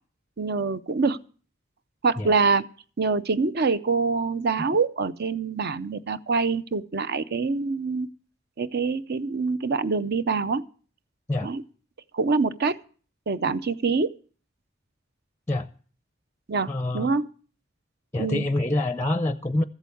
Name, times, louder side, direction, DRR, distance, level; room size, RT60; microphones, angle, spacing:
voice 1, 0.4-1.2 2.0-2.6 3.0-8.1 8.6-10.6 11.4-11.6 12.1-12.8 13.3-14.1 16.5-17.3 18.2-18.4, right 4 dB, 55° right, 0.6 m, -25 dB
voice 2, 16.7-17.1 18.1-19.6, left 1 dB, 15° left, 0.5 m, -26 dB
14.5 x 8.1 x 7.0 m
head